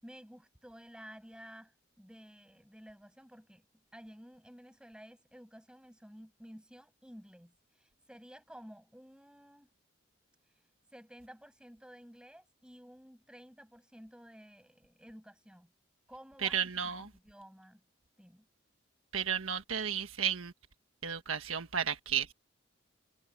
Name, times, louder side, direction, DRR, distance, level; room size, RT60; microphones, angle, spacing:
voice 1, 0.0-3.7 3.9-9.7 10.9-15.7 16.1-17.8 18.2-18.5, equal, 5° right, 6.1 m, -53 dB
voice 2, 16.4-17.1 19.1-20.5 21.0-22.3, right 8 dB, 90° right, 1.5 m, -33 dB
head